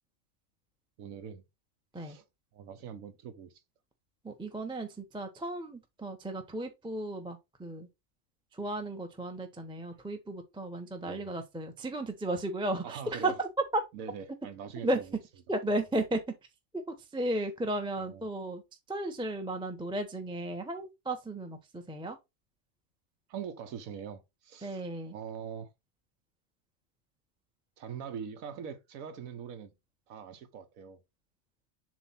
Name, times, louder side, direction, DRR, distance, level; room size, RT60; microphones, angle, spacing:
voice 1, 1.0-1.4 2.0-2.2 2.5-3.5 11.0-11.3 12.8-13.4 13.9-15.2 18.0-18.3 23.3-24.8 25.1-25.7 27.8-29.7 30.1-31.0, right 7 dB, 85° right, 1.2 m, -43 dB
voice 2, 4.2-7.9 8.5-13.8 14.8-15.0 15.5-16.2 17.1-18.6 18.9-22.2 24.6-25.2, right 1 dB, 5° right, 0.6 m, -34 dB
7.3 x 2.5 x 5.6 m
omnidirectional pair, 1.4 m